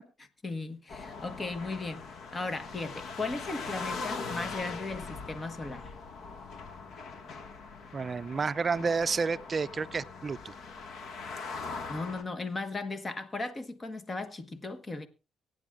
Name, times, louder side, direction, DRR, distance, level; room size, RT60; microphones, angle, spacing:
voice 1, 0.4-2.0 2.3-5.9 11.9-15.1, left 3 dB, 30° left, 1.4 m, -36 dB
sound 1, 0.9-12.2, left 4 dB, 65° left, 1.7 m, -41 dB
voice 2, 7.9-10.5, right 5 dB, 40° right, 0.5 m, -30 dB
24.0 x 9.2 x 2.5 m
cardioid pair, 90°, 0 cm